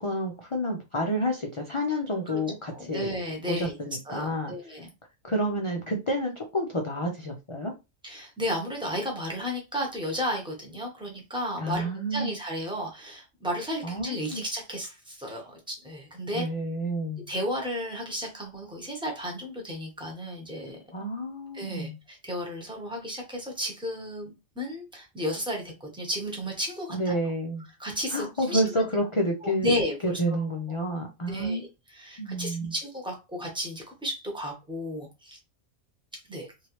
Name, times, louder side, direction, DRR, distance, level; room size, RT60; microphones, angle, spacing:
voice 1, 0.0-3.2 3.5-4.5 5.2-7.7 11.6-12.3 13.8-14.4 16.3-17.3 20.9-22.0 26.9-27.7 28.1-29.7 30.0-31.6 32.2-32.7, equal, 50° left, 1 dB, 0.3 m, -29 dB
voice 2, 2.7-3.7 4.1-4.9 8.0-16.5 17.3-20.8 21.5-27.1 27.8-28.7 29.4-30.2 31.3-31.7 31.9-35.4 36.3-36.5, equal, 5° right, 0 dB, 0.9 m, -33 dB
3.0 x 2.7 x 3.0 m, 0.26 s
omnidirectional pair, 1.3 m